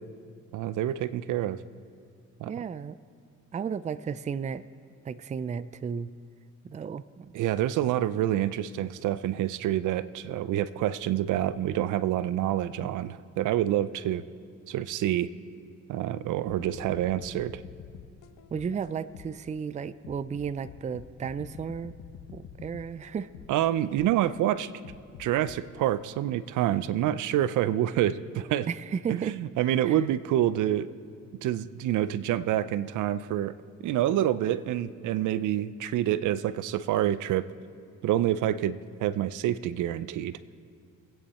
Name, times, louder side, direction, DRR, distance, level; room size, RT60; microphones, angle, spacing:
voice 1, 0.5-1.6 2.4-2.5 7.3-14.2 14.7-15.3 15.9-17.6 23.5-24.7 25.2-28.7 29.1-30.9 31.4-33.5 33.8-37.5 38.0-40.4, right 12 dB, 80° right, 16 dB, 0.6 m, -27 dB
voice 2, 2.5-3.0 3.5-4.6 5.0-6.1 6.6-7.3 18.5-21.9 22.3-23.3 28.7-29.4 29.8-30.0, right 6 dB, 25° right, 15 dB, 0.4 m, -34 dB
sound 1, 16.4-19.5 20.0-24.3 24.8-25.6, left 8 dB, 85° left, 0.9 m, -47 dB
24.5 x 9.1 x 4.3 m, 2.5 s
cardioid pair, 90°, 30 cm